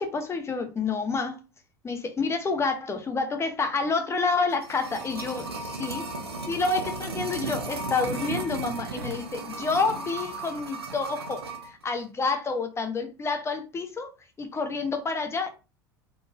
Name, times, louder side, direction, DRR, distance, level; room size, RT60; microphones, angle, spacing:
voice 1, 0.0-1.4 1.8-6.0 6.5-14.1 14.4-15.5, left 4 dB, 20° left, 0.8 m, -28 dB
sound 1, 4.3-11.7 12.0-12.1, right 3 dB, 85° right, 0.7 m, -35 dB
4.0 x 3.6 x 2.5 m
figure-of-eight pair, 80°, 13 cm